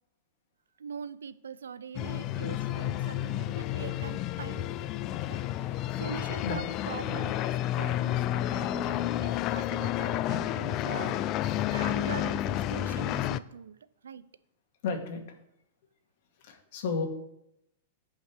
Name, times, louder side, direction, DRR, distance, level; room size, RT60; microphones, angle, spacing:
voice 1, 0.8-4.7 5.3-7.3 7.7-13.8 14.0-14.2, right 6 dB, 85° right, 16 dB, 0.5 m, -42 dB
sound 1, 1.9-13.4, left 13 dB, 40° left, 0.4 m, -31 dB
voice 2, 14.8-15.2 16.4-17.1, left 5 dB, 60° left, 3 dB, 2.1 m, -32 dB
15.5 x 5.6 x 3.5 m, 0.80 s
hypercardioid pair, 115°, 0 cm